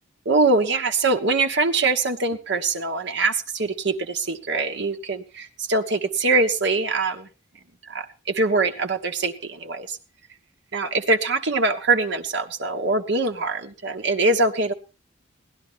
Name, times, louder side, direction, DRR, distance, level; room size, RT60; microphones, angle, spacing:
voice 1, 0.2-7.3 7.9-10.0 10.7-14.7, right 3 dB, 60° right, 6 dB, 1.2 m, -23 dB
17.5 x 11.5 x 3.5 m, 0.29 s
head